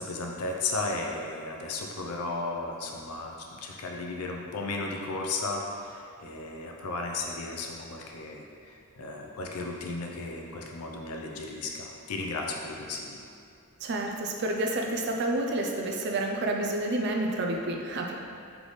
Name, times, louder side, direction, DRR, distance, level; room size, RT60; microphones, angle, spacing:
voice 1, 0.0-13.2, left 3 dB, 80° left, 0 dB, 0.5 m, -35 dB
voice 2, 13.8-18.1, right 2 dB, 50° right, 1 dB, 0.4 m, -29 dB
3.9 x 3.5 x 3.1 m, 2.4 s
head